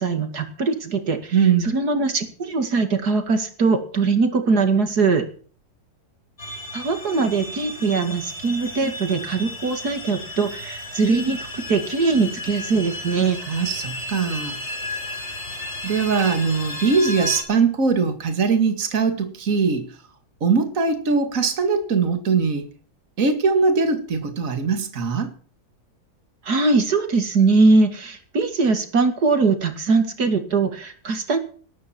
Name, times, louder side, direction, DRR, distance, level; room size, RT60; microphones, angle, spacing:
voice 1, 0.0-1.4 1.7-5.2 6.7-13.4 26.4-31.4, right 4 dB, 75° right, 2.7 m, -21 dB
voice 2, 1.3-1.7 13.4-14.6 15.8-20.0 20.4-22.7 23.2-25.3, right 5 dB, 55° right, 2.4 m, -21 dB
sound 1, 6.4-17.4, left 1 dB, 40° left, 4.3 m, -34 dB
18.5 x 13.0 x 4.5 m
omnidirectional pair, 1.7 m